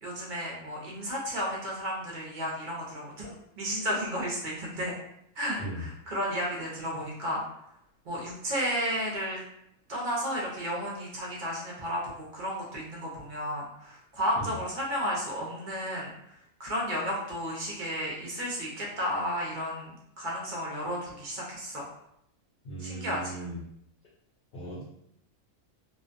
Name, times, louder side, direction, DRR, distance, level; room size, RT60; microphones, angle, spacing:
voice 1, 0.0-4.9 5.4-7.4 8.0-9.4 9.9-21.9 22.8-23.4, equal, 50° right, -3 dB, 0.6 m, -33 dB
voice 2, 22.6-23.6 24.5-24.8, right 2 dB, 55° left, -7 dB, 0.7 m, -38 dB
2.4 x 2.2 x 2.5 m, 0.74 s
omnidirectional pair, 1.5 m